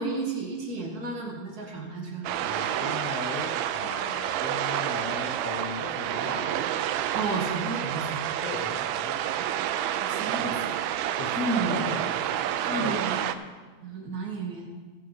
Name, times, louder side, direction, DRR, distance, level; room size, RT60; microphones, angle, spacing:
voice 1, 0.0-2.3 7.1-8.2 10.0-10.8 11.3-11.8 12.6-13.2 13.8-14.7, right 3 dB, 55° right, -1 dB, 1.0 m, -32 dB
sound 1, 2.2-13.3, right 11 dB, 85° right, 2.4 m, -29 dB
voice 2, 2.4-6.7 8.4-9.2 10.3-10.6 11.2-11.4 11.7-12.0 12.7-13.0, left 3 dB, 65° left, -1 dB, 1.6 m, -37 dB
15.5 x 9.7 x 4.0 m, 1.4 s
omnidirectional pair, 4.2 m